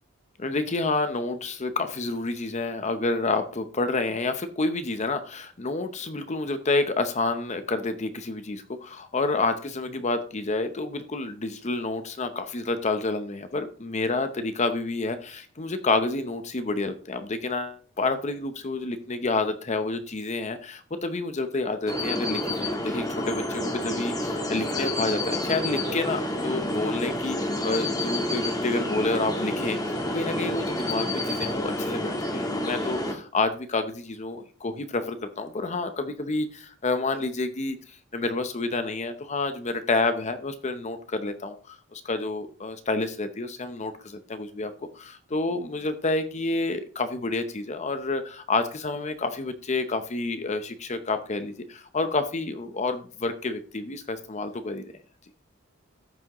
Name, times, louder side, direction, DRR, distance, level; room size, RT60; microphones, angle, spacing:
voice 1, 0.4-29.8 30.1-54.8, left 3 dB, 35° left, 9 dB, 0.7 m, -29 dB
sound 1, 21.9-33.1, left 1 dB, 20° left, 1.3 m, -29 dB
14.0 x 6.2 x 3.0 m, 0.41 s
head